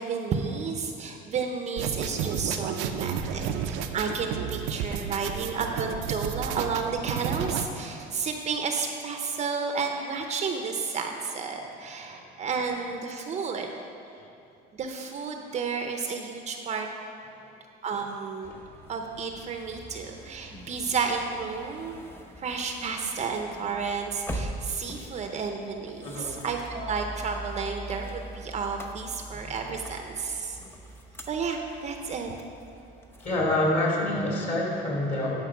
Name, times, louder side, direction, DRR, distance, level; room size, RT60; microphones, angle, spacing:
voice 1, 0.0-13.7 14.7-16.9 17.8-18.5 18.9-22.0 22.4-30.6 31.2-32.3, right 5 dB, 35° right, 4 dB, 0.7 m, -32 dB
sound 1, 1.8-7.6, right 8 dB, 85° right, 0.6 m, -32 dB
sound 2, 18.4-33.4, right 1 dB, 10° left, 0.7 m, -42 dB
voice 2, 26.0-26.4 33.2-35.4, left 1 dB, 35° left, -3 dB, 2.6 m, -27 dB
11.0 x 5.3 x 5.9 m, 2.6 s
cardioid pair, 135°, 20 cm